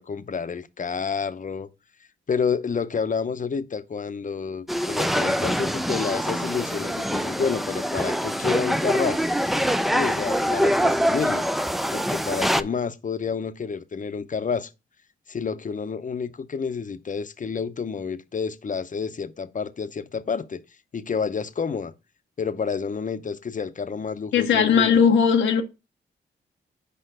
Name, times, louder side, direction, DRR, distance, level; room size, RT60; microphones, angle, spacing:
voice 1, 0.0-1.7 2.3-9.2 9.9-11.4 11.9-14.7 15.3-20.6 20.9-21.9 22.4-25.0, left 5 dB, 40° left, 0.7 m, -29 dB
sound 1, 4.7-12.6, equal, ahead, 0.4 m, -24 dB
voice 2, 24.3-25.6, left 6 dB, 90° left, 0.8 m, -18 dB
5.1 x 4.5 x 4.9 m
cardioid pair, 55°, 20 cm